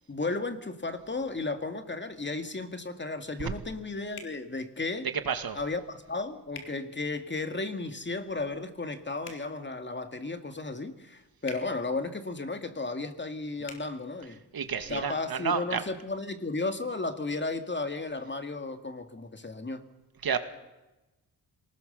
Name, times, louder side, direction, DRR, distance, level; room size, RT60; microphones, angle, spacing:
voice 1, 0.1-5.1 5.5-14.4 14.9-19.8, left 3 dB, 25° left, 2.2 m, -34 dB
sound 1, 4.1-4.4 6.5-6.7 9.2-9.4 11.4-11.6 13.6-13.8, left 5 dB, 75° left, 3.5 m, -43 dB
voice 2, 5.3-5.6 14.5-15.8 20.2-20.4, right 6 dB, 60° right, 2.3 m, -30 dB
26.5 x 19.0 x 6.9 m
cardioid pair, 75°, 41 cm